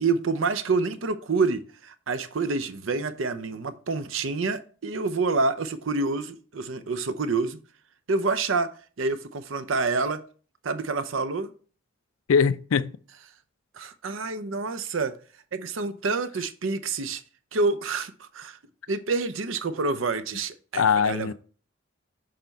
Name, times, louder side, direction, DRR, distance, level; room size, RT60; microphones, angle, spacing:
voice 1, 0.0-7.6 8.1-8.7 9.0-10.2 10.6-11.5 13.8-15.1 15.5-17.2 17.5-18.6 18.9-21.3, right 3 dB, 75° right, 0.6 m, -27 dB
voice 2, 12.3-13.0 20.8-21.3, left 6 dB, 85° left, 0.4 m, -21 dB
6.7 x 4.4 x 4.0 m
head